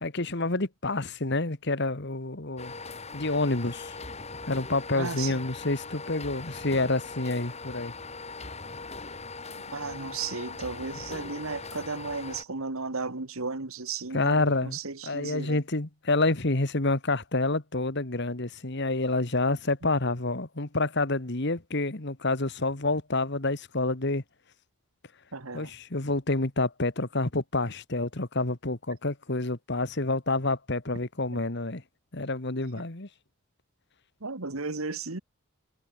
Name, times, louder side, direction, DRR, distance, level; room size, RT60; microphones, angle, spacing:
voice 1, 0.0-2.7 3.1-4.0 4.5-7.9 14.1-24.2 25.5-31.8 32.1-33.1, left 2 dB, 50° left, 1.8 m, -28 dB
sound 1, 2.6-12.4, left 3 dB, 30° left, 4.4 m, -40 dB
voice 2, 5.0-5.4 9.7-15.6 19.8-19.9 25.3-25.7 31.3-31.4 34.2-35.2, right 4 dB, 75° right, 1.8 m, -35 dB
head